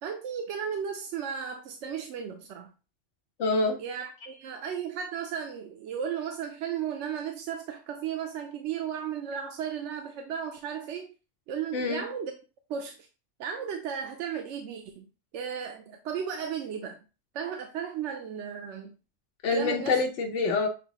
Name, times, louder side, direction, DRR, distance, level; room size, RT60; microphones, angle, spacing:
voice 1, 0.0-2.7 3.8-11.1 11.5-12.3 12.7-13.0 13.4-15.1 15.3-17.0 17.3-19.0 19.5-20.0, right 8 dB, 85° right, 5 dB, 0.9 m, -35 dB
voice 2, 3.4-3.8 11.7-12.0 19.4-20.7, left 3 dB, 85° left, 3 dB, 1.0 m, -26 dB
6.4 x 2.7 x 2.9 m, 0.32 s
omnidirectional pair, 1.2 m